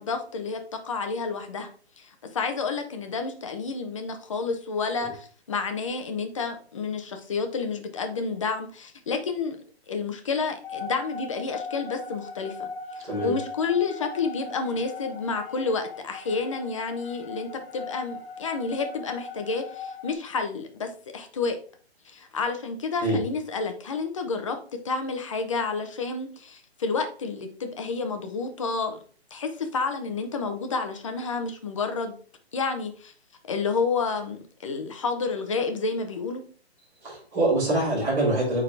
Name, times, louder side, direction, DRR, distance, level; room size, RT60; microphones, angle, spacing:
voice 1, 0.0-1.7 2.0-9.6 9.9-21.6 22.0-24.6 24.8-29.0 29.3-32.1 32.5-33.1 33.5-36.4, left 4 dB, 30° left, 6 dB, 0.8 m, -30 dB
sound 1, 10.6-20.1, left 4 dB, 60° left, 0.9 m, -39 dB
voice 2, 37.0-38.6, right 1 dB, 10° right, -10 dB, 3.5 m, -24 dB
8.8 x 3.8 x 3.3 m, 0.43 s
hypercardioid pair, 170°, 33 cm